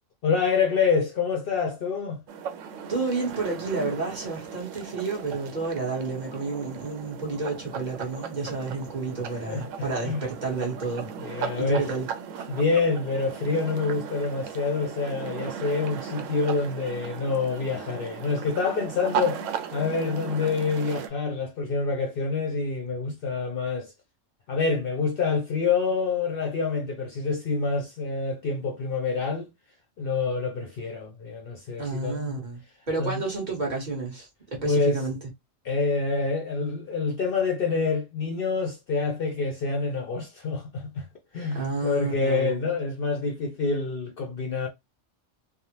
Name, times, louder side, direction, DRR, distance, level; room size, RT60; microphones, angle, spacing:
voice 1, 0.2-2.2 9.5-10.2 11.2-11.9 12.5-19.4 19.7-23.9 24.5-29.5 30.0-32.4 33.0-33.2 34.6-35.0 35.6-41.1 41.3-44.7, left 4 dB, 60° left, 0.7 m, -27 dB
sound 1, 2.3-21.1, right 7 dB, 80° right, 0.9 m, -37 dB
voice 2, 2.9-11.1 11.3-12.1 31.8-32.6 32.9-35.2 41.5-42.6, right 3 dB, 40° right, 1.2 m, -30 dB
3.3 x 2.0 x 2.8 m
omnidirectional pair, 1.3 m